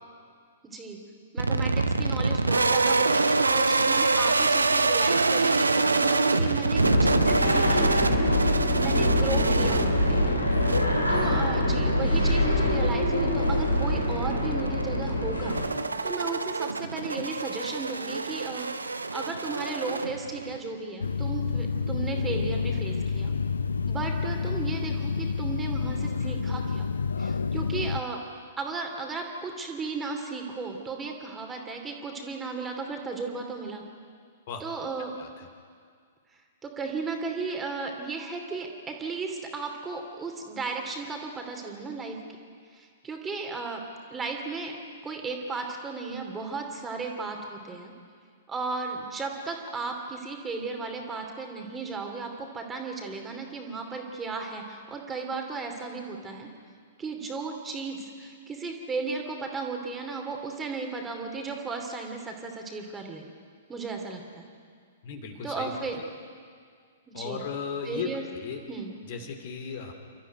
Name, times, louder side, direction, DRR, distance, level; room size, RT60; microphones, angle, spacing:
voice 1, 0.6-1.0 1.3-8.0 8.7-10.2 11.1-15.6 16.0-18.7 19.1-23.3 23.9-26.9 27.2-28.2 28.6-33.8 34.6-35.1 36.6-42.2 42.7-43.8 44.1-44.7 45.0-47.9 48.5-56.5 57.0-63.3 63.7-64.5 65.4-66.0 67.1-67.4 67.8-68.3 68.7-68.9, right 4 dB, 15° right, 3 dB, 2.8 m, -35 dB
sound 1, 1.4-20.6, right 3 dB, 75° right, 1.0 m, -26 dB
sound 2, 6.8-15.7, left 1 dB, 85° left, 3.3 m, -24 dB
sound 3, 21.0-28.0, left 5 dB, 70° left, 0.6 m, -29 dB
voice 2, 35.0-35.5 65.0-66.1 67.1-68.6 69.1-69.9, left 6 dB, 45° left, 5 dB, 2.8 m, -36 dB
29.0 x 13.5 x 9.3 m, 2.1 s
figure-of-eight pair, 110°, 0 cm